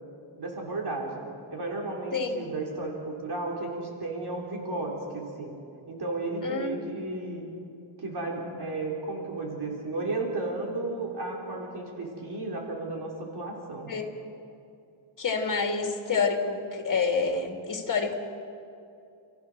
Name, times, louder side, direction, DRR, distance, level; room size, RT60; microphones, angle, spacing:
voice 1, 0.4-1.1 1.5-5.6 5.9-7.4 8.0-13.9, right 2 dB, 55° right, -1 dB, 3.7 m, -33 dB
voice 2, 2.1-2.5 6.4-6.9 13.9-14.1 15.2-18.1, left 4 dB, 40° left, 2 dB, 2.9 m, -28 dB
29.5 x 15.0 x 6.2 m, 2.6 s
cardioid pair, 105°, 48 cm